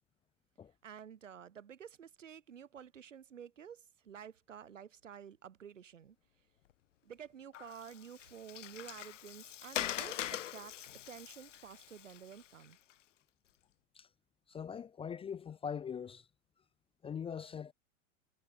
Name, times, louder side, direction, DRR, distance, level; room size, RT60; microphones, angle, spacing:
voice 1, 0.8-6.2 7.0-12.8, right 8 dB, 90° right, 6.2 m, -51 dB
Water, 7.5-12.9, left 12 dB, 80° left, 1.6 m, -43 dB
voice 2, 14.5-16.3 17.0-17.7, left 7 dB, 15° left, 0.5 m, -42 dB
hypercardioid pair, 105°, 37 cm